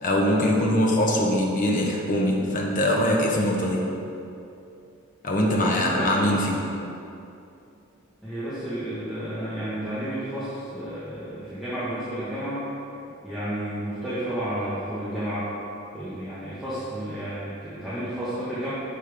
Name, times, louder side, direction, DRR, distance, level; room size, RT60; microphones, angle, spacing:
voice 1, 0.0-3.9 5.2-6.6, left 1 dB, 40° left, -1 dB, 1.2 m, -22 dB
voice 2, 5.4-6.3 8.2-12.6 13.2-15.5 15.9-18.7, right 1 dB, ahead, -14 dB, 1.7 m, -31 dB
11.5 x 5.9 x 3.7 m, 2.7 s
head